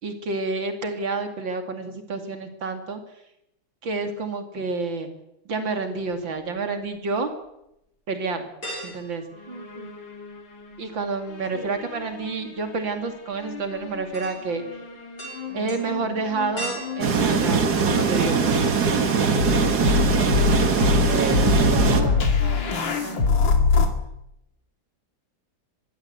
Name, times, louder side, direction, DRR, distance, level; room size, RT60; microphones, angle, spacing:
voice 1, 0.0-3.0 3.8-5.1 5.4-7.3 8.1-8.5 8.8-9.2 10.8-14.8 15.5-18.7 20.0-20.5 20.9-21.4 21.8-22.1 22.8-23.2, right 3 dB, 80° right, 6 dB, 3.3 m, -29 dB
sound 1, 6.4-7.0 7.4-7.5 8.6-10.3 10.6-18.5 18.9-19.0 20.5-21.1 21.4-21.6 21.8-22.4 22.7-22.8, right 1 dB, 60° left, 6.8 m, -41 dB
sound 2, 9.4-11.0 11.3-12.7 13.4-23.9, left 5 dB, 75° left, 3.0 m, -26 dB
voice 2, 9.5-9.9 11.5-11.8 21.4-22.6, right 2 dB, 25° right, 3 dB, 2.8 m, -37 dB
sound 3, 17.0-22.0, right 5 dB, 55° right, 2.2 m, -21 dB
22.0 x 15.5 x 8.4 m, 0.83 s
omnidirectional pair, 2.0 m